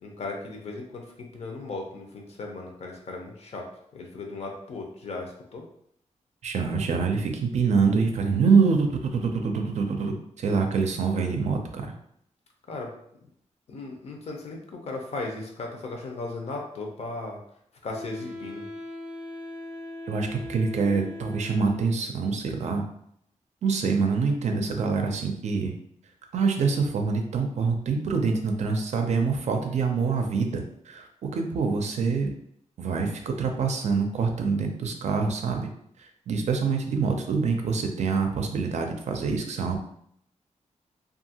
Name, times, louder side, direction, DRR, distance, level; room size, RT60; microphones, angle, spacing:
voice 1, 0.0-3.6 3.9-5.6 12.7-12.9 13.7-17.4 17.8-18.7, left 3 dB, 60° left, 1 dB, 0.6 m, -36 dB
voice 2, 6.4-11.9 20.1-22.8 23.6-25.7 26.3-32.3 32.8-35.7 36.3-39.8, right 5 dB, 65° right, 4 dB, 0.4 m, -25 dB
Wind instrument woodwind instrument, 17.9-22.1, left 1 dB, 10° right, 0.6 m, -40 dB
2.7 x 2.4 x 2.8 m, 0.71 s
wide cardioid pair, 150°, 12 cm